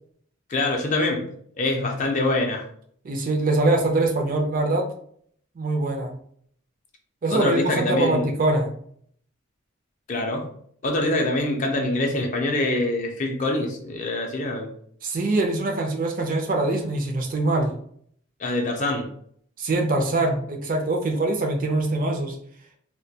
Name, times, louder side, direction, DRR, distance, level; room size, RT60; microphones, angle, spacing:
voice 1, 0.5-1.2 1.6-2.7 7.3-8.3 10.1-10.5 10.8-14.7 18.4-19.1, left 2 dB, 35° left, 2 dB, 0.4 m, -24 dB
voice 2, 3.0-4.9 5.6-6.1 7.2-8.7 15.0-17.7 19.6-22.4, right 2 dB, 40° right, 3 dB, 0.4 m, -23 dB
2.2 x 2.2 x 2.7 m, 0.62 s
head